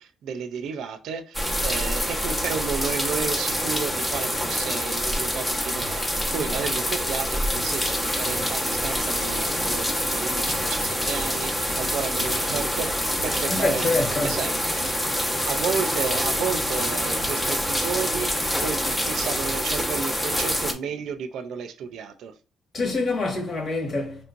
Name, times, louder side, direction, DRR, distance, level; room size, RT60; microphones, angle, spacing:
voice 1, 0.0-13.9 14.2-14.6 15.4-18.3 18.6-22.3, right 6 dB, 80° right, 0.5 m, -32 dB
sound 1, 1.3-20.7, equal, 10° left, 0.9 m, -26 dB
voice 2, 13.5-14.3 22.7-24.3, left 3 dB, 45° left, 1.7 m, -26 dB
4.4 x 3.2 x 2.5 m
cardioid pair, 90°, 0 cm